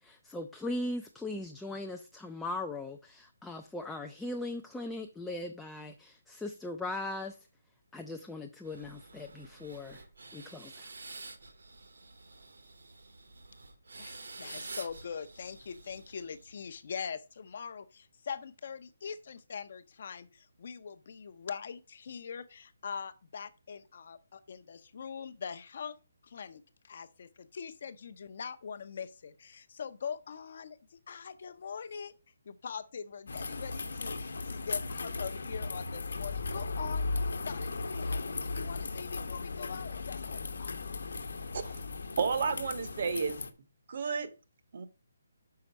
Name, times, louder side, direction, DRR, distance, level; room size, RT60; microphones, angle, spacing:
voice 1, 0.0-7.4 7.9-10.0 10.3-10.9, left 2 dB, 5° left, 0.3 m, -39 dB
sound 1, 8.6-16.6, right 3 dB, 85° right, 1.5 m, -49 dB
voice 2, 14.0-26.0 26.2-32.1 32.5-37.1 37.4-40.9 41.6-41.7, left 6 dB, 40° left, 0.6 m, -42 dB
sound 2, 33.3-43.5, left 3 dB, 75° left, 1.0 m, -36 dB
voice 3, 42.2-43.4 43.9-44.3 44.7-44.9, right 5 dB, 40° right, 0.8 m, -31 dB
6.0 x 5.7 x 5.3 m
hypercardioid pair, 175°, 0 cm